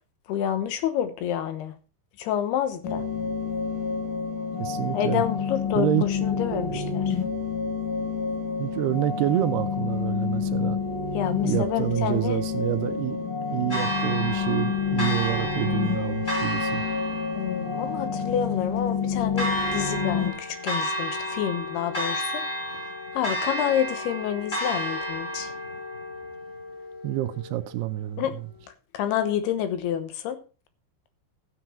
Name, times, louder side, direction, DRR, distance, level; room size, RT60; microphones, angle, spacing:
voice 1, 0.3-1.7 2.2-3.0 4.9-7.2 11.1-12.4 17.3-22.4 23.1-25.5 28.2-28.4 28.7-30.4, left 10 dB, 75° left, 2.9 m, -28 dB
sound 1, 2.8-20.3, left 6 dB, 55° left, 3.5 m, -28 dB
voice 2, 4.6-5.2 5.7-6.0 6.3-7.1 8.6-10.8 11.4-16.8 27.0-28.2, right 16 dB, 80° right, 2.6 m, -28 dB
Church bell, 13.7-27.7, equal, 20° left, 3.7 m, -32 dB
13.0 x 8.1 x 4.4 m
omnidirectional pair, 4.9 m